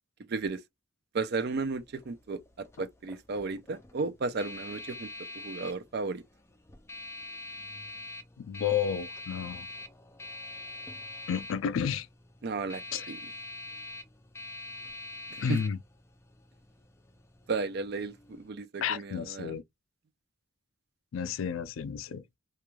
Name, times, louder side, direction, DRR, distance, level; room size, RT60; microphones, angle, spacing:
voice 1, 0.3-0.6 1.1-5.1 5.3-6.2 12.4-12.8 13.1-13.2 15.5-15.6 17.5-19.5, right 4 dB, 55° right, 0.4 m, -34 dB
sound 1, 1.7-18.5, left 1 dB, 15° left, 0.4 m, -45 dB
voice 2, 8.4-9.7 11.3-12.1 12.9-13.1 15.4-15.8 18.8-19.6 21.1-22.2, left 7 dB, 80° left, 0.3 m, -31 dB
2.4 x 2.2 x 3.0 m
head